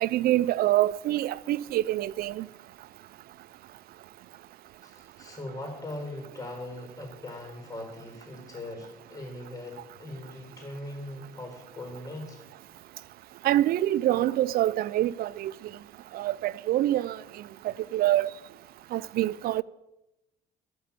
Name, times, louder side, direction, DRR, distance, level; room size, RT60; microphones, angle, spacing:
voice 1, 0.0-2.5 13.4-15.5 16.1-17.2 17.9-18.3 18.9-19.6, right 14 dB, 60° right, 0.4 m, -25 dB
voice 2, 4.8-12.4, left 1 dB, 20° left, 4.3 m, -40 dB
12.5 x 5.3 x 8.4 m
cardioid pair, 110°, 17 cm